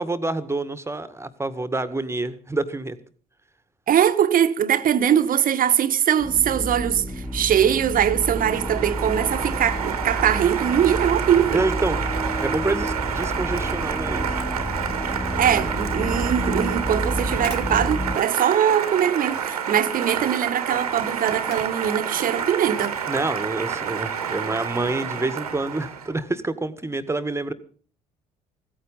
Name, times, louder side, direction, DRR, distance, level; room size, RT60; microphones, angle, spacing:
voice 1, 0.0-3.0 11.5-12.0 12.4-14.4 23.1-27.5, right 2 dB, 15° right, 1.8 m, -27 dB
voice 2, 3.9-11.7 15.0-23.0, right 9 dB, 50° right, 1.4 m, -21 dB
sound 1, 6.2-18.2, equal, 5° left, 2.2 m, -30 dB
Applause, 7.2-26.1, right 7 dB, 85° right, 1.8 m, -29 dB
sound 2, 16.2-18.6 19.3-19.7 21.3-21.8 22.8-23.1 23.6-23.7, left 4 dB, 55° left, 3.2 m, -45 dB
16.0 x 14.5 x 5.5 m
figure-of-eight pair, 50°, 19 cm